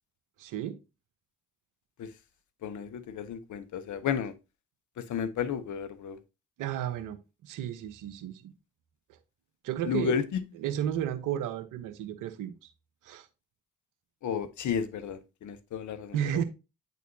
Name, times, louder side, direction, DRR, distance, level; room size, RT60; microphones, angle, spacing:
voice 1, 0.4-0.8 6.6-8.5 9.6-10.1 10.6-12.7 13.0-13.3 16.1-16.4, right 10 dB, 80° right, 1.0 m, -33 dB
voice 2, 2.6-4.3 5.0-6.2 9.8-10.4 14.2-16.4, left 7 dB, 70° left, 1.0 m, -32 dB
9.2 x 4.1 x 2.7 m
hypercardioid pair, 40°, 31 cm